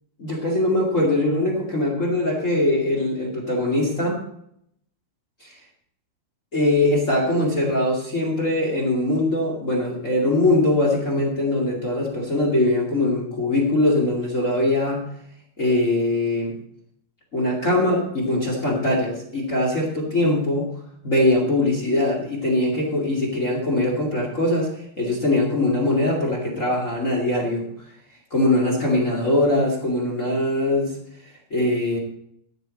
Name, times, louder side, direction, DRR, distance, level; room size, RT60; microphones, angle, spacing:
voice 1, 0.2-4.2 5.4-5.5 6.5-15.0 15.6-16.5 17.3-20.7 21.0-24.7 25.0-27.7 28.3-31.0 31.5-32.0, left 1 dB, 40° left, -1 dB, 1.1 m, -22 dB
13.5 x 9.6 x 4.1 m, 0.70 s
omnidirectional pair, 5.5 m